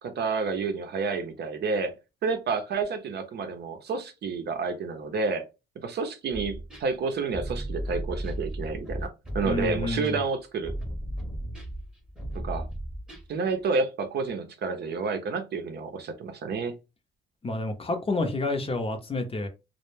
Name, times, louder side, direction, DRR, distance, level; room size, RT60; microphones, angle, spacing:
voice 1, 0.0-1.9 2.2-5.4 5.8-10.7 12.4-12.7 13.3-16.7, right 4 dB, 55° right, 0.6 m, -30 dB
sound 1, 6.3-13.5, right 1 dB, 5° right, 0.8 m, -35 dB
voice 2, 9.4-10.1 17.4-19.5, left 2 dB, 30° left, 0.6 m, -29 dB
2.1 x 2.1 x 3.1 m
cardioid pair, 90°, 20 cm